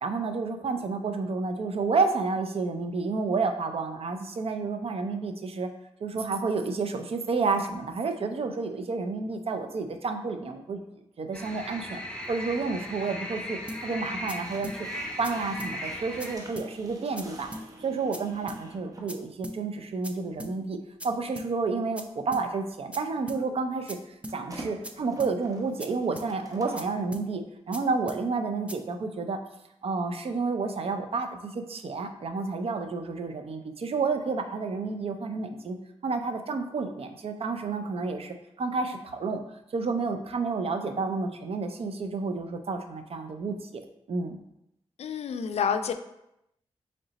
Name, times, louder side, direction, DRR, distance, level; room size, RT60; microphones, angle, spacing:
voice 1, 0.0-5.7 6.0-12.0 12.3-17.5 17.8-20.8 21.0-24.0 24.3-29.4 29.8-35.8 36.0-39.4 39.7-43.8 44.1-44.4, right 4 dB, 60° right, 6 dB, 0.5 m, -30 dB
sound 1, 11.3-16.4, equal, 10° left, 0.9 m, -37 dB
sound 2, 13.7-13.8 14.3-14.4 14.6-14.8 15.2-15.3 15.6-15.7 16.2-16.3 16.6-16.7 17.2-17.3 17.5-17.7 18.1-18.2 18.5-18.6 19.1-19.2 19.4-19.6 20.0-20.1 20.4-20.5 21.0-21.1 21.4-21.5 22.0-22.1 22.3-22.5 22.9-23.0 23.3-23.4 23.9-24.0 24.2-24.4 24.8-24.9 25.2-25.3 25.8-25.9 26.2-26.3 26.8-26.9 27.1-27.3 27.7-27.8 28.1-28.2 28.7-28.8, equal, 10° right, 0.4 m, -39 dB
sound 3, 14.4-19.1 20.3-20.4 24.3-26.9, right 1 dB, 30° right, 0.8 m, -47 dB
voice 2, 45.0-45.9, left 7 dB, 70° left, 9 dB, 0.4 m, -28 dB
3.8 x 3.3 x 4.0 m, 0.84 s
cardioid pair, 65°, 11 cm